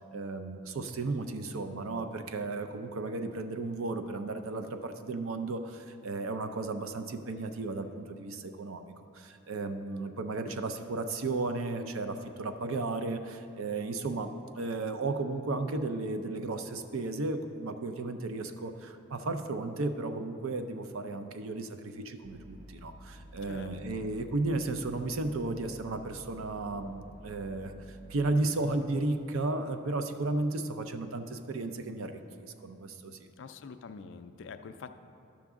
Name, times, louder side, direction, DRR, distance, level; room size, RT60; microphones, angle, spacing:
voice 1, 0.0-33.2, right 2 dB, 75° right, 8 dB, 0.5 m, -34 dB
sound 1, 22.2-28.4, equal, 35° right, 0.8 m, -51 dB
voice 2, 23.4-24.1 33.4-35.0, left 5 dB, 55° left, 9 dB, 0.3 m, -46 dB
12.5 x 5.9 x 3.6 m, 2.6 s
head